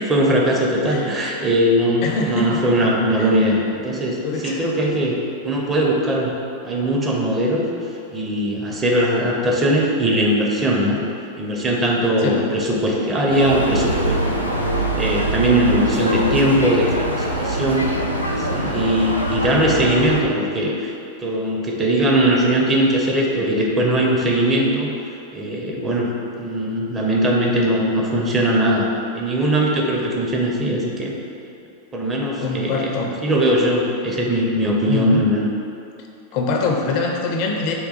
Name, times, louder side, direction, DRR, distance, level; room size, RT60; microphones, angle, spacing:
voice 1, 0.0-4.2 4.4-5.2 5.4-6.3 6.6-11.0 11.4-18.0 18.3-20.9 21.2-24.9 25.3-28.9 29.1-31.2 31.9-32.9 33.2-35.5, right 1 dB, 20° right, -2 dB, 0.5 m, -20 dB
voice 2, 2.0-2.6 3.2-3.3 4.2-4.7 12.2-12.5 32.4-33.1 34.9-35.2 36.3-37.7, left 3 dB, 45° left, 1 dB, 0.4 m, -23 dB
sound 1, 13.3-20.2, right 1 dB, 90° right, 0.3 m, -24 dB
3.7 x 2.2 x 4.0 m, 2.6 s
figure-of-eight pair, 90°, 0 cm